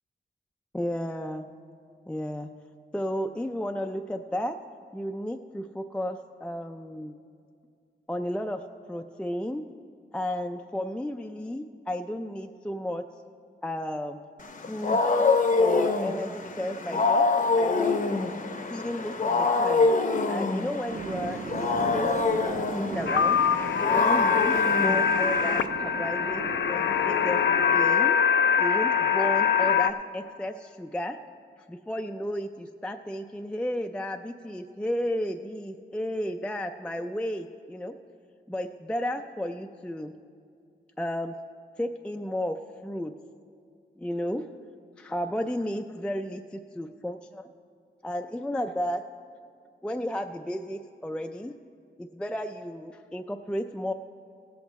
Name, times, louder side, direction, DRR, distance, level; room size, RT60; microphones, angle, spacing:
voice 1, 0.7-1.5 2.1-2.5 2.9-4.6 4.9-7.2 8.1-9.6 10.1-13.0 13.6-14.2 14.7-15.0 15.6-17.3 17.6-18.0 18.7-19.9 20.3-22.1 22.4-23.4 23.8-27.4 27.7-28.2 28.6-31.2 31.7-38.0 38.5-40.1 41.0-41.4 41.8-43.1 44.0-44.5 45.0-47.5 48.0-49.0 49.8-51.6 52.0-53.9, equal, 5° left, 6 dB, 0.3 m, -33 dB
Wild animals, 14.4-25.7, left 3 dB, 45° left, 0.7 m, -26 dB
sound 1, 20.9-27.8, right 5 dB, 60° right, 0.6 m, -38 dB
sound 2, 23.1-29.9, left 7 dB, 80° left, 0.4 m, -23 dB
17.0 x 8.0 x 4.1 m, 2.3 s
wide cardioid pair, 145°, 18 cm